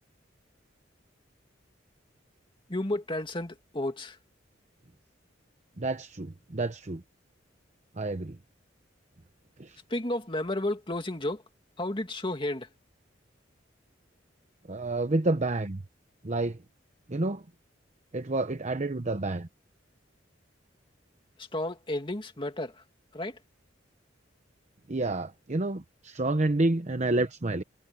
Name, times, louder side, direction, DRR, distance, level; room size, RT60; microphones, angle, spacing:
voice 1, 2.7-4.2 9.9-11.4 11.8-12.7 21.5-22.8 23.1-23.4, left 1 dB, 25° left, 2.3 m, -32 dB
voice 2, 5.8-7.0 8.0-8.4 9.6-9.8 14.7-15.8 16.2-16.6 17.1-17.4 18.1-19.5 24.9-27.6, right 2 dB, 40° right, 0.9 m, -29 dB
head